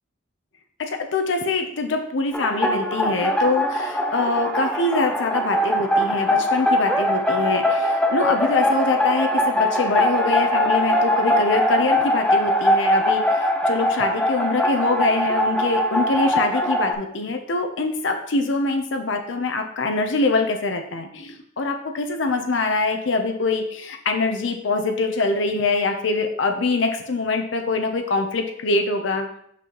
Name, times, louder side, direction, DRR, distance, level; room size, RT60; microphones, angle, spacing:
voice 1, 0.8-29.3, left 3 dB, 70° left, 5 dB, 0.6 m, -24 dB
sound 1, 2.3-16.9, equal, 5° left, 0.5 m, -21 dB
5.9 x 5.5 x 3.0 m, 0.69 s
head